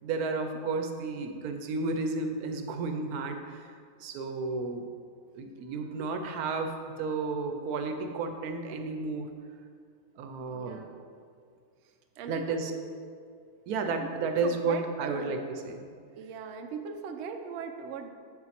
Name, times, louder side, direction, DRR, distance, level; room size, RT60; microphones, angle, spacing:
voice 1, 0.0-3.7 4.0-4.9 5.3-9.3 10.2-10.8 12.3-12.7 13.7-15.4 15.6-15.9, right 4 dB, 70° right, 6 dB, 1.0 m, -32 dB
voice 2, 10.5-11.0 12.2-12.6 13.8-15.4 16.2-18.1, right 6 dB, 85° right, 5 dB, 0.6 m, -39 dB
7.6 x 4.4 x 4.2 m, 2.2 s
omnidirectional pair, 1.8 m